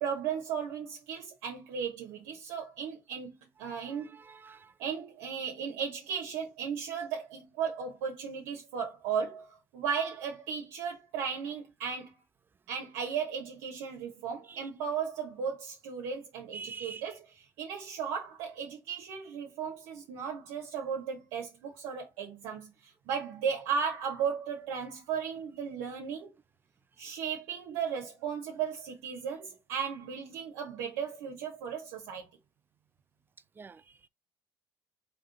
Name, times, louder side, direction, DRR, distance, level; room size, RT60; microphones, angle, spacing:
voice 1, 0.0-4.2 4.8-12.2 12.7-26.3 27.0-32.3, right 7 dB, 75° right, 1.0 m, -36 dB
voice 2, 3.6-4.7 14.5-14.7 16.5-17.0 27.0-27.1 33.6-34.1, right 5 dB, 25° right, 0.4 m, -47 dB
3.7 x 3.0 x 4.1 m
hypercardioid pair, 65°, 9 cm